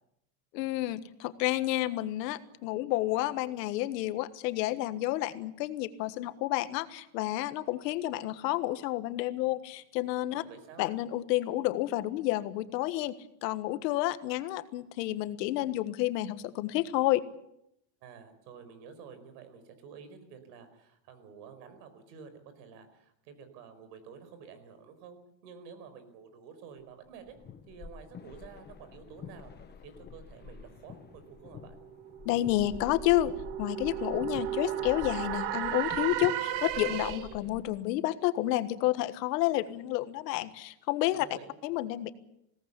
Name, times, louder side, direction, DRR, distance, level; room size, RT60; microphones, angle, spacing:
voice 1, 0.5-10.4 10.8-13.1 13.4-17.2 32.2-33.3 33.6-41.3 41.6-42.1, left 15 dB, 90° left, 12 dB, 1.6 m, -30 dB
voice 2, 10.4-10.9 18.0-27.3 27.7-31.8 41.2-41.5, right 6 dB, 85° right, 10 dB, 5.0 m, -50 dB
sound 1, 27.1-37.8, left 5 dB, 20° left, 1.1 m, -48 dB
sound 2, 31.3-37.5, right 11 dB, 55° right, 1.9 m, -35 dB
21.5 x 18.0 x 8.4 m, 0.77 s
cardioid pair, 165°, 48 cm